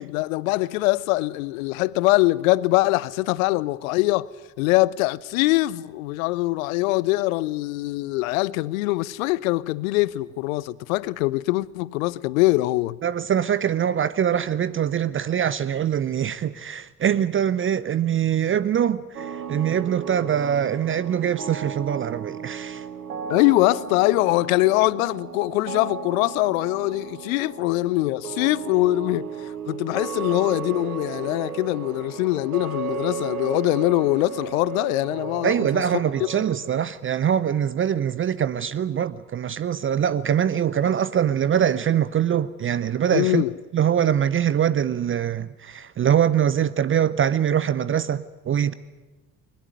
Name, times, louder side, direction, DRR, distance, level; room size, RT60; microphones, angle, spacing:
voice 1, 0.0-4.3 4.6-13.0 23.3-29.3 29.7-35.8 36.4-36.5 43.1-43.5, left 19 dB, 65° left, 0.7 m, -23 dB
voice 2, 13.0-22.8 35.4-43.4 43.7-48.7, right 9 dB, 30° right, 0.7 m, -23 dB
sound 1, 19.1-36.6, right 7 dB, 80° right, 1.3 m, -35 dB
21.0 x 20.0 x 9.1 m
figure-of-eight pair, 55°, 44 cm